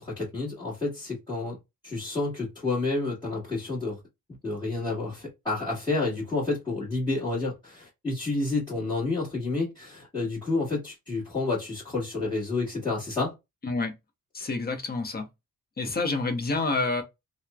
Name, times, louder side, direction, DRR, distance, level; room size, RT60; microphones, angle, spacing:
voice 1, 0.0-1.6 1.8-4.0 4.4-13.3 14.4-14.5, left 3 dB, 10° left, 1.2 m, -29 dB
voice 2, 14.3-15.3 15.8-17.0, left 3 dB, 25° left, 0.7 m, -28 dB
3.0 x 2.0 x 2.2 m
wide cardioid pair, 150°, 35 cm